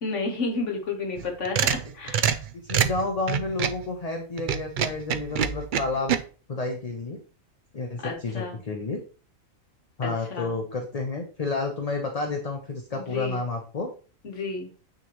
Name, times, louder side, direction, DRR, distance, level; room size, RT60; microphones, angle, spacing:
voice 1, 0.0-2.2 8.0-8.6 10.0-10.6 12.9-13.4 14.2-14.7, left 3 dB, 65° left, 3 dB, 1.4 m, -31 dB
sound 1, 1.2-3.8 4.4-6.2, right 8 dB, 70° right, 0.4 m, -25 dB
voice 2, 2.6-6.2 6.5-7.2 7.7-9.0 10.0-13.9, left 3 dB, 35° left, 4 dB, 0.7 m, -30 dB
8.8 x 3.8 x 3.0 m, 0.38 s
omnidirectional pair, 1.4 m